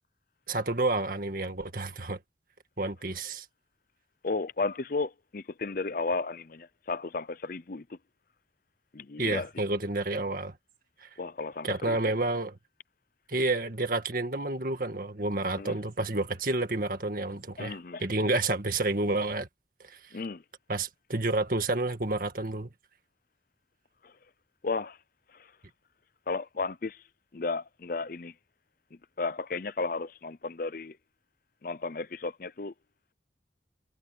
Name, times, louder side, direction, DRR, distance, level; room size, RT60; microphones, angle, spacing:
voice 1, 0.5-2.2 2.8-3.5 9.2-10.5 11.0-11.1 11.6-12.6 13.3-19.5 19.8-20.0 20.7-22.7, right 2 dB, 50° right, 2.0 m, -30 dB
voice 2, 4.2-8.0 8.9-9.5 11.2-12.0 15.6-15.8 17.6-18.0 20.1-20.4 24.0-24.1 24.6-25.0 25.3-25.5 26.3-27.0 27.3-28.3 29.2-31.0 31.6-32.7, left 3 dB, 50° left, 0.6 m, -34 dB
head